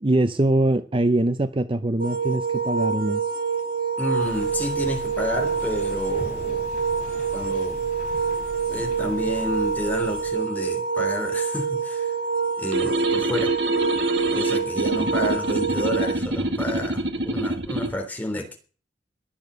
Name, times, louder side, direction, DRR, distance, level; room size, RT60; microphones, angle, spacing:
voice 1, 0.0-3.2, right 1 dB, 30° right, 0.7 m, -22 dB
sound 1, 2.0-16.2, right 6 dB, 55° right, 1.6 m, -26 dB
voice 2, 4.0-6.7 7.3-7.8 8.7-12.1 12.5-13.5 14.3-18.6, left 1 dB, 10° left, 3.4 m, -30 dB
sound 2, 4.2-10.3, left 1 dB, 45° left, 5.5 m, -39 dB
sound 3, 12.7-17.9, right 1 dB, 70° right, 2.1 m, -26 dB
21.5 x 7.3 x 6.9 m
head